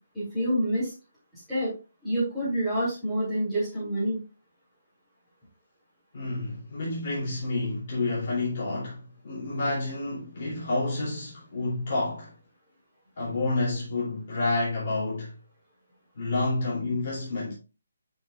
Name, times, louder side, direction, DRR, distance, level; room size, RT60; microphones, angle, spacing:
voice 1, 0.1-0.9 1.3-1.7 2.0-4.2, equal, 5° left, 2.9 m, -27 dB
voice 2, 6.1-12.3 13.2-15.3 16.2-17.5, left 2 dB, 30° left, 2.7 m, -29 dB
10.0 x 4.8 x 2.4 m
hypercardioid pair, 180°, 0 cm